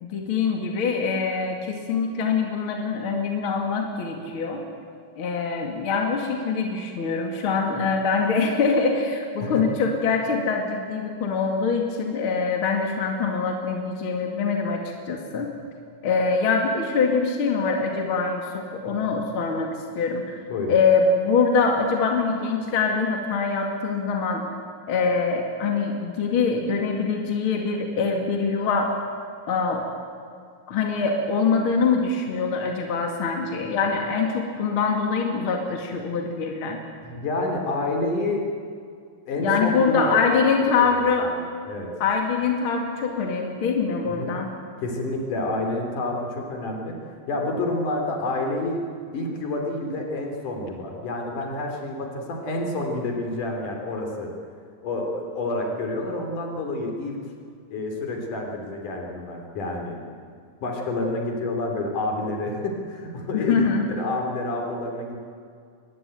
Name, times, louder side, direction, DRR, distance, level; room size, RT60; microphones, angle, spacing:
voice 1, 0.0-4.6 5.2-14.8 15.1-15.5 16.0-20.4 20.7-24.4 24.9-29.0 29.5-29.8 30.7-36.8 39.4-41.3 42.0-44.5 63.3-63.8, left 5 dB, 40° left, 2 dB, 2.9 m, -24 dB
voice 2, 37.0-38.4 39.3-41.1 41.7-41.9 44.0-44.3 44.8-46.9 47.3-48.8 49.1-54.3 54.8-57.2 57.7-60.0 60.6-65.1, left 2 dB, 65° left, 2 dB, 4.8 m, -28 dB
23.5 x 20.0 x 9.2 m, 2.2 s
omnidirectional pair, 3.9 m